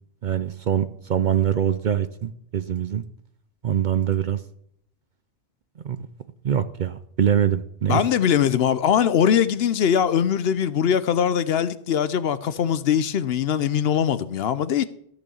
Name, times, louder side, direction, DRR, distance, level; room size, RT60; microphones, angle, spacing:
voice 1, 0.2-3.0 3.6-4.4 5.8-6.0 6.4-8.0, right 9 dB, 55° right, 0.6 m, -23 dB
voice 2, 7.9-14.8, left 8 dB, 65° left, 0.8 m, -21 dB
14.0 x 6.0 x 6.9 m
omnidirectional pair, 1.2 m